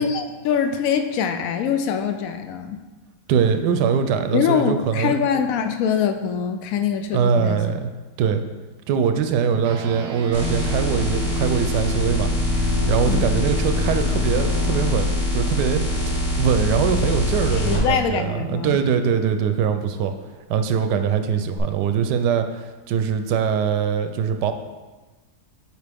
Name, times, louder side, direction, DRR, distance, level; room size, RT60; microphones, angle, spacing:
voice 1, 0.0-2.8 4.3-7.6 13.1-13.4 17.6-18.8, left 7 dB, 70° left, 7 dB, 0.9 m, -23 dB
voice 2, 3.3-5.2 7.1-7.9 8.2-8.4 8.9-12.3 12.6-20.1 20.5-24.5, right 7 dB, 85° right, 8 dB, 1.2 m, -22 dB
sound 1, 9.6-19.4, right 8 dB, 70° right, 0.6 m, -33 dB
sound 2, 10.3-17.8 21.6-21.7, left 3 dB, 45° left, 2.5 m, -23 dB
8.1 x 4.7 x 3.5 m, 1.2 s
omnidirectional pair, 1.8 m